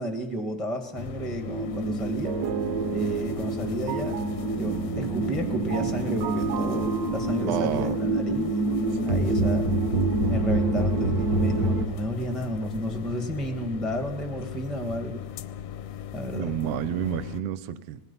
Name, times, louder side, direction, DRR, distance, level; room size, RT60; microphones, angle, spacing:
voice 1, 0.0-2.3 2.9-4.2 4.5-8.5 9.0-9.7 10.3-15.3 16.1-16.5, equal, ahead, 6 dB, 0.7 m, -32 dB
sound 1, 1.0-17.4, left 10 dB, 70° left, 1.6 m, -38 dB
sound 2, 1.4-11.9, right 2 dB, 40° right, 1.4 m, -27 dB
sound 3, 2.2-7.8, right 8 dB, 80° right, 2.8 m, -34 dB
voice 2, 7.5-8.0 9.0-9.2 16.3-18.0, right 10 dB, 65° right, 14 dB, 1.8 m, -30 dB
25.5 x 19.5 x 5.6 m, 1.0 s
omnidirectional pair, 3.8 m